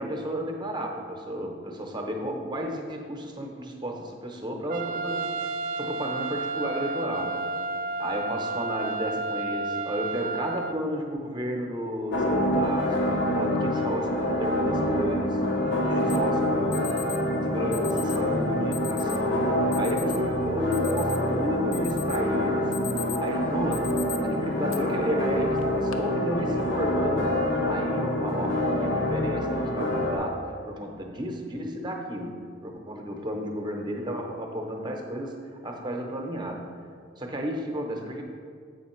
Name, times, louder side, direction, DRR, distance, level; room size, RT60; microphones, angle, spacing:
voice 1, 0.0-5.3 5.8-7.5 8.0-15.4 15.8-17.1 17.4-22.8 23.2-36.7 37.2-38.2, equal, 20° right, 2 dB, 0.8 m, -32 dB
Trumpet, 4.7-10.8, right 3 dB, 45° right, 0.4 m, -31 dB
sound 1, 12.1-30.2, left 1 dB, 60° left, 0.8 m, -26 dB
Alarm, 16.1-16.2 16.7-17.2 17.7-18.2 18.7-19.2 19.7-20.2 20.6-21.3 21.7-22.2 22.6-23.3 23.7-24.2 24.7-24.8 25.6-25.9, left 12 dB, 90° left, 0.6 m, -38 dB
7.8 x 5.5 x 4.4 m, 2.1 s
head